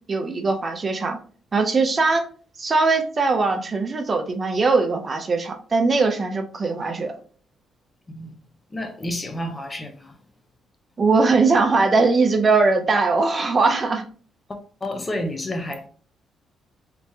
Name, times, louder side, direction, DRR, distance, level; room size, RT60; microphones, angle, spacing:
voice 1, 0.1-1.2 1.5-2.3 2.6-7.2 11.0-14.1, right 3 dB, 30° right, 0.6 m, -20 dB
voice 2, 8.1-8.4 8.7-10.2 14.5-15.9, left 1 dB, 20° left, 0.5 m, -30 dB
3.4 x 3.0 x 2.7 m
cardioid pair, 110°, 0 cm